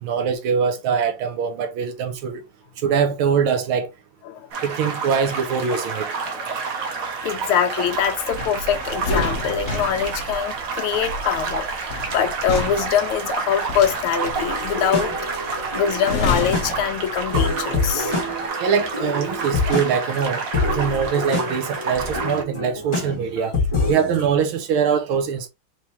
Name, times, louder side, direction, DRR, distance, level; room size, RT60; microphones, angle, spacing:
voice 1, 0.0-2.4 2.8-3.9 4.6-6.1 18.6-23.5 23.9-25.5, right 7 dB, 75° right, 1.6 m, -23 dB
sound 1, 4.5-22.4, right 4 dB, 50° right, 1.1 m, -29 dB
voice 2, 7.2-15.1 15.4-18.1, left 8 dB, 80° left, 1.6 m, -24 dB
sound 2, 8.3-17.7 18.0-18.2, left 3 dB, 55° left, 0.8 m, -30 dB
sound 3, 14.3-24.3, left 3 dB, 15° left, 1.7 m, -27 dB
4.6 x 3.3 x 2.8 m
omnidirectional pair, 2.4 m